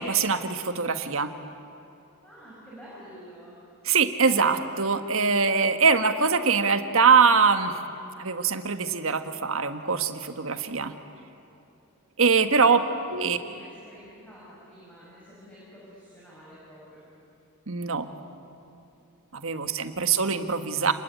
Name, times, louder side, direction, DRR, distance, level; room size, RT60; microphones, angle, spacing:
voice 1, 0.0-1.3 3.8-7.8 8.2-10.9 12.2-12.8 13.1-13.4 17.7-18.1 19.3-20.9, right 5 dB, 65° right, 8 dB, 1.5 m, -23 dB
voice 2, 2.2-3.6 13.4-17.1, equal, 5° left, -8 dB, 6.7 m, -49 dB
29.5 x 21.5 x 9.4 m, 2.8 s
head